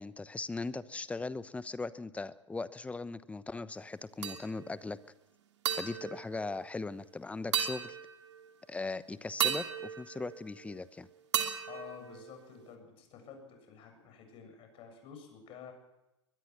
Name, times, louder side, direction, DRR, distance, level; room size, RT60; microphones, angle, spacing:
voice 1, 0.0-5.0 5.7-8.0 8.7-11.1, left 3 dB, 10° left, 16 dB, 1.0 m, -39 dB
Metallic Ting, 4.2-4.8 5.6-7.1 7.5-8.5 9.4-10.9 11.3-12.7, right 9 dB, 65° right, 2.8 m, -36 dB
voice 2, 11.6-15.7, left 7 dB, 35° left, 5 dB, 7.7 m, -50 dB
23.0 x 21.0 x 6.2 m, 0.93 s
figure-of-eight pair, 95°, 16 cm